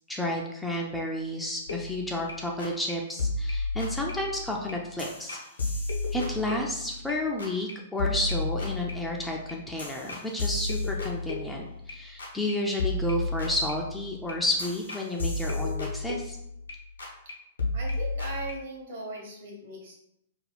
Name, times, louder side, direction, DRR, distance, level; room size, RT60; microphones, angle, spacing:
voice 1, 0.1-5.4 6.1-16.4, left 1 dB, 5° left, -1 dB, 0.3 m, -31 dB
sound 1, 1.7-2.3 2.6-2.9 3.2-7.1 7.4-7.7 8.0-11.9 12.2-12.5 12.8-16.7 17.0-17.3 17.6-18.5, left 3 dB, 70° left, 0.6 m, -32 dB
voice 2, 17.7-20.0, right 2 dB, 55° right, -2 dB, 1.1 m, -38 dB
2.5 x 2.3 x 3.3 m, 0.78 s
figure-of-eight pair, 105°, 0 cm